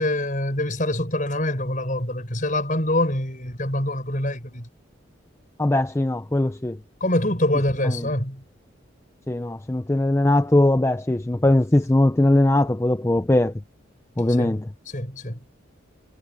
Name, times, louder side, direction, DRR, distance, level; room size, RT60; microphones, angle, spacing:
voice 1, 0.0-4.7 7.0-8.4 14.3-14.6 14.9-15.4, left 1 dB, 40° left, 5.5 m, -25 dB
voice 2, 5.6-6.8 9.3-13.5 14.2-14.7, left 1 dB, 15° left, 0.4 m, -20 dB
head